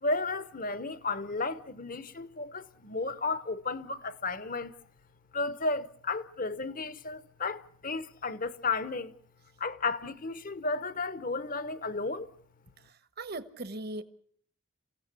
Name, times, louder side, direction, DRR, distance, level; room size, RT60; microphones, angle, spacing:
voice 1, 0.0-4.7 5.3-9.1 9.6-12.3, left 3 dB, 40° left, 1.0 m, -33 dB
voice 2, 12.8-14.0, right 2 dB, 45° right, 1.2 m, -39 dB
28.5 x 16.0 x 8.2 m
head